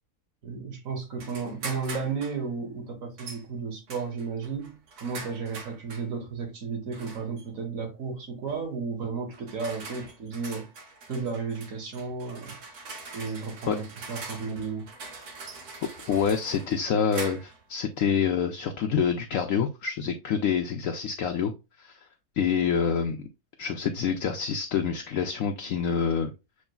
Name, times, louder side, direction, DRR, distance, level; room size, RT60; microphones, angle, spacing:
voice 1, 0.4-10.7 11.1-12.6 13.1-14.9, right 5 dB, 60° right, 1.6 m, -33 dB
sound 1, 1.2-2.4 3.2-3.4 3.9-6.1 6.9-7.4 8.5-8.7 9.3-17.6, right 3 dB, 75° right, 1.7 m, -43 dB
voice 2, 16.1-21.5 21.8-22.0 22.4-23.3 23.6-26.3, left 7 dB, 65° left, 0.9 m, -27 dB
7.3 x 3.1 x 2.2 m
omnidirectional pair, 1.7 m